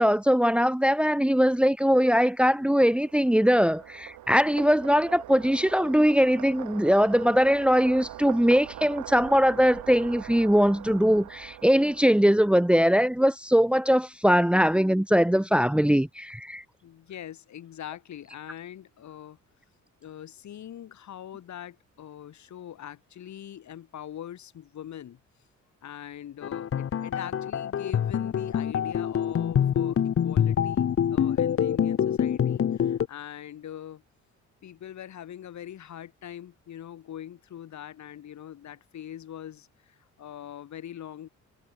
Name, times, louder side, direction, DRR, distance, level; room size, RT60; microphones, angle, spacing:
voice 1, 0.0-16.6, equal, 5° right, 1.5 m, -21 dB
sound 1, 2.3-12.9, right 13 dB, 80° right, 5.0 m, -43 dB
voice 2, 16.8-19.4 20.0-25.2 25.8-34.0 34.6-41.3, left 10 dB, 65° left, 6.6 m, -42 dB
sound 2, 26.4-33.1, left 9 dB, 45° left, 1.2 m, -25 dB
cardioid pair, 90°, 30 cm